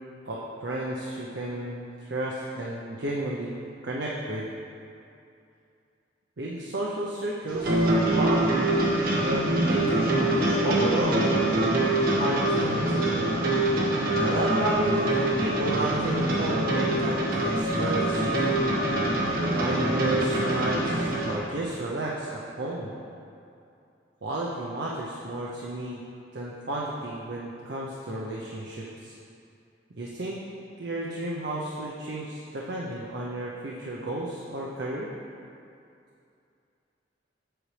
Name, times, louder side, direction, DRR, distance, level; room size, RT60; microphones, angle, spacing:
voice 1, 0.3-3.5 3.8-4.5 6.4-8.8 9.2-11.9 12.2-13.2 14.2-18.5 19.5-22.9 24.2-26.0 26.3-29.1 30.0-30.4 30.8-35.1, right 1 dB, 75° right, -4 dB, 0.7 m, -32 dB
sound 1, 7.5-21.4, right 1 dB, 55° right, 1.2 m, -25 dB
7.9 x 7.4 x 3.3 m, 2.5 s
head